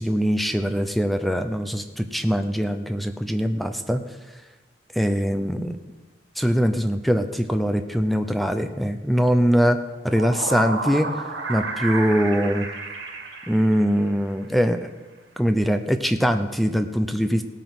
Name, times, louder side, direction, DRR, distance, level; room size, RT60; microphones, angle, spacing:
voice 1, 0.0-4.0 4.9-5.8 6.4-9.8 10.0-11.1 11.5-12.7 13.5-14.9 15.4-17.4, equal, ahead, 8 dB, 0.7 m, -22 dB
sound 1, 9.8-14.3, right 3 dB, 80° right, 2.7 m, -32 dB
17.0 x 9.1 x 6.1 m, 1.2 s
head